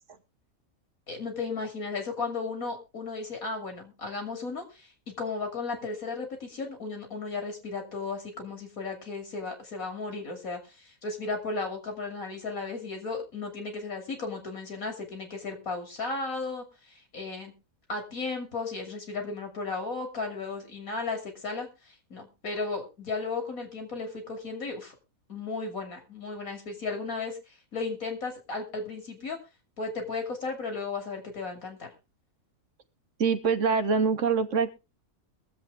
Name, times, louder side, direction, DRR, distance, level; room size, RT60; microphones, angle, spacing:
voice 1, 1.1-4.9 5.2-16.7 17.1-17.5 17.9-24.9 25.3-27.4 27.7-29.4 29.8-31.9, left 3 dB, 75° left, 4 dB, 3.1 m, -35 dB
voice 2, 33.2-34.7, right 5 dB, 60° right, 9 dB, 1.3 m, -24 dB
22.0 x 7.6 x 3.4 m, 0.27 s
omnidirectional pair, 1.5 m